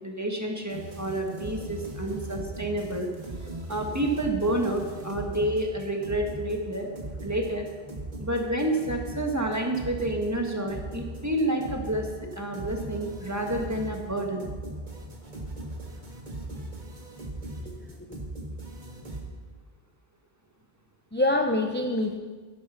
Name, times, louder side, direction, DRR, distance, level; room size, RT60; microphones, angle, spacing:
voice 1, 0.0-3.1 3.7-6.9 7.2-7.7 8.2-12.1 12.3-14.4, right 1 dB, 15° right, 2 dB, 1.7 m, -29 dB
sound 1, 0.7-19.2, right 1 dB, 45° right, 2.1 m, -39 dB
voice 2, 17.6-18.2 21.1-22.2, left 1 dB, 10° left, 3 dB, 0.7 m, -26 dB
13.0 x 11.5 x 5.8 m, 1.4 s
omnidirectional pair, 1.0 m